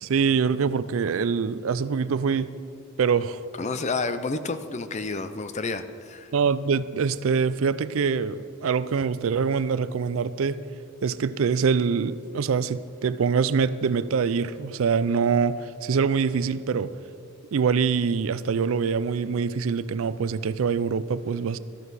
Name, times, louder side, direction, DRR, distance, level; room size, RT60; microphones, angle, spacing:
voice 1, 0.0-2.5 3.0-3.4 6.3-10.6 11.0-16.9 17.5-21.6, right 6 dB, 70° right, 0.4 m, -24 dB
voice 2, 3.6-6.3, left 3 dB, 30° left, 0.5 m, -30 dB
13.0 x 12.5 x 4.1 m
head